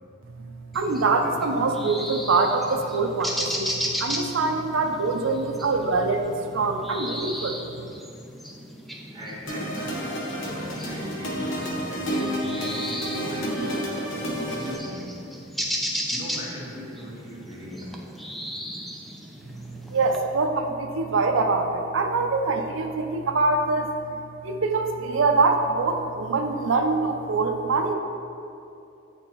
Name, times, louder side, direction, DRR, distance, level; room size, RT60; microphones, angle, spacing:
sound 1, 0.7-20.2, equal, ahead, 0.3 m, -35 dB
voice 1, 0.7-7.6 19.9-23.9 24.4-27.9, right 3 dB, 75° right, 4 dB, 0.5 m, -24 dB
voice 2, 9.1-15.2 16.0-18.2, equal, 20° right, -7 dB, 1.4 m, -40 dB
sound 2, 9.5-14.8, equal, 75° left, 1.0 m, -30 dB
8.5 x 4.3 x 3.0 m, 2.7 s
head